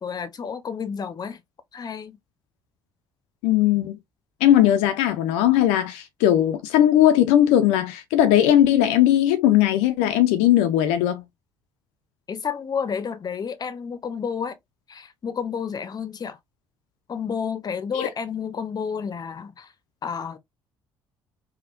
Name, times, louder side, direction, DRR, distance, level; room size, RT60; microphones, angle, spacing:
voice 1, 0.0-1.4 1.7-2.2 12.3-14.6 14.9-16.4 17.1-19.7 20.0-20.4, left 6 dB, 35° left, 0.6 m, -30 dB
voice 2, 3.4-4.0 4.4-11.2 17.9-18.1, left 12 dB, 75° left, 0.4 m, -18 dB
3.5 x 2.2 x 2.4 m
hypercardioid pair, 55°, 11 cm